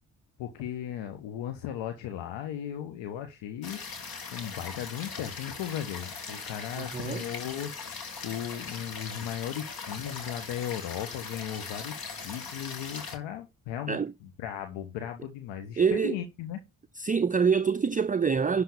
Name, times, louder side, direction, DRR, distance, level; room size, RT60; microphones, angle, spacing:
voice 1, 0.4-3.8 4.3-8.0 8.2-16.6, left 10 dB, 65° left, 1.4 m, -36 dB
sound 1, 3.6-13.2, left 5 dB, 45° left, 2.7 m, -40 dB
voice 2, 6.8-7.2 13.9-14.1 15.8-16.2 17.0-18.6, right 6 dB, 15° right, 0.6 m, -25 dB
11.5 x 4.0 x 7.1 m
figure-of-eight pair, 40°, 48 cm